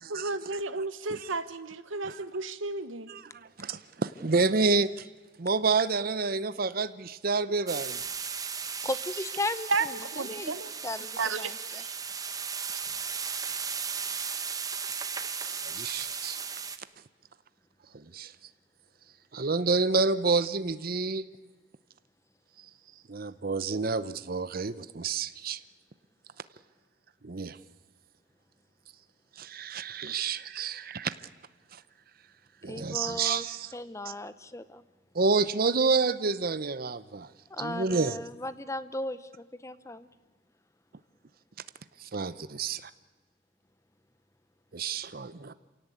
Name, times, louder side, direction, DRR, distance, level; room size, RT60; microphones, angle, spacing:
voice 1, 0.1-3.1 9.7-10.7 11.2-11.9, right 3 dB, 90° right, 12 dB, 1.1 m, -33 dB
voice 2, 3.1-5.1 5.4-8.0 15.6-16.4 17.9-18.3 19.3-21.3 23.1-25.6 27.2-27.6 29.4-31.1 32.6-33.7 34.1-34.2 35.1-37.3 37.6-38.2 42.0-42.9 44.7-45.5, right 4 dB, 50° right, 14 dB, 0.7 m, -29 dB
sound 1, 7.7-16.8, right 6 dB, 20° right, 0.9 m, -36 dB
voice 3, 8.8-9.9 10.2-10.5 10.8-11.8 32.7-33.5 33.7-34.8 37.5-40.1, left 2 dB, 15° left, 14 dB, 0.7 m, -36 dB
27.0 x 17.5 x 8.5 m, 1.3 s
head